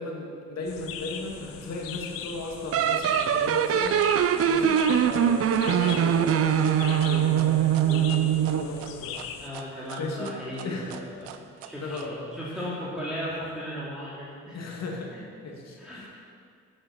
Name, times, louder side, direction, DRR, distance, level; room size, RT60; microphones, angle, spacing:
voice 1, 0.0-9.2 9.6-10.3 10.6-10.9 11.8-12.7 14.5-15.2 15.4-16.1, left 2 dB, 50° left, 0 dB, 2.1 m, -36 dB
sound 1, 0.7-9.5, left 8 dB, 75° left, 0.8 m, -40 dB
sound 2, 2.7-8.8, right 9 dB, 45° right, 0.6 m, -22 dB
sound 3, 3.5-12.1, right 11 dB, 85° right, 0.7 m, -43 dB
voice 2, 9.4-11.3 11.6-14.6 15.1-15.2 15.8-16.1, equal, ahead, -9 dB, 2.7 m, -36 dB
9.7 x 8.1 x 6.1 m, 2.3 s
supercardioid pair, 60°, 34 cm